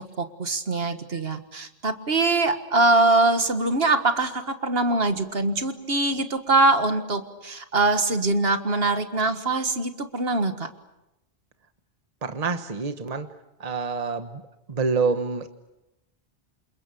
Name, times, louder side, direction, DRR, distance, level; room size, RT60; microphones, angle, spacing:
voice 1, 0.0-10.7, right 2 dB, 60° right, 8 dB, 1.9 m, -23 dB
voice 2, 12.2-13.3 13.6-14.3 14.7-15.5, right 4 dB, 35° right, 9 dB, 1.2 m, -26 dB
28.0 x 28.0 x 7.0 m, 0.94 s
omnidirectional pair, 1.1 m